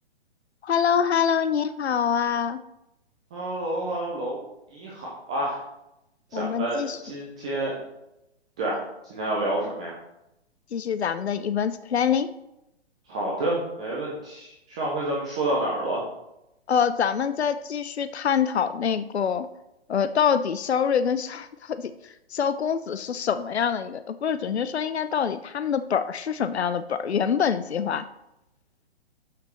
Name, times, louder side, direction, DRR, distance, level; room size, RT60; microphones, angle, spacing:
voice 1, 0.6-2.6 6.3-7.0 10.7-12.3 16.7-19.5 19.9-21.9 22.3-28.0, left 7 dB, 75° left, 12 dB, 0.6 m, -25 dB
voice 2, 3.3-4.4 4.7-5.6 6.3-7.7 8.6-8.8 9.1-9.9 13.1-16.0, right 1 dB, 5° right, -5 dB, 0.3 m, -29 dB
12.5 x 5.9 x 3.1 m, 0.88 s
figure-of-eight pair, 125°, 33 cm